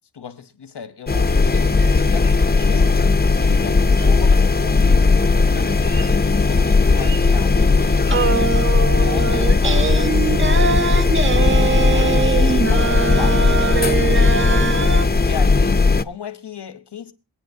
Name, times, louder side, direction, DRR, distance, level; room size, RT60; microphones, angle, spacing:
voice 1, 0.1-3.1 3.4-5.1 5.5-6.2 6.4-8.6 8.9-9.9 11.6-13.5 14.3-14.7 15.2-17.1, left 7 dB, 90° left, 1.1 m, -36 dB
sound 1, 1.1-16.0, left 4 dB, 25° left, 0.6 m, -16 dB
sound 2, 1.5-8.6, right 3 dB, 55° right, 4.0 m, -41 dB
sound 3, 8.1-15.1, right 5 dB, 30° right, 0.6 m, -22 dB
27.0 x 9.0 x 2.7 m
wide cardioid pair, 80°, 40 cm